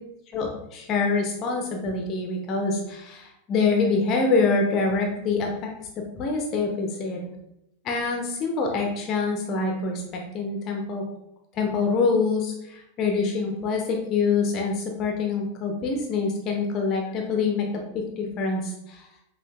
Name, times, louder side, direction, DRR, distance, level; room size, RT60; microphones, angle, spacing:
voice 1, 0.3-5.7 6.2-7.2 7.8-11.0 11.5-19.1, left 4 dB, 35° left, 1 dB, 0.5 m, -25 dB
5.6 x 2.5 x 2.2 m, 0.83 s
figure-of-eight pair, 90°, 0 cm